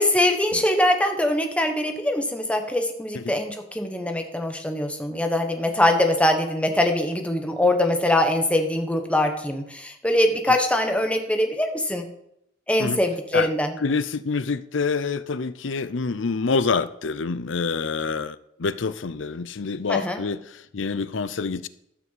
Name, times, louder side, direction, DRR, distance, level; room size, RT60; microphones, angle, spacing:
voice 1, 0.0-12.0 12.7-13.7 19.9-20.2, left 1 dB, 5° left, 5 dB, 1.1 m, -23 dB
voice 2, 13.8-21.7, left 4 dB, 90° left, 15 dB, 0.6 m, -27 dB
13.0 x 6.0 x 7.4 m, 0.79 s
head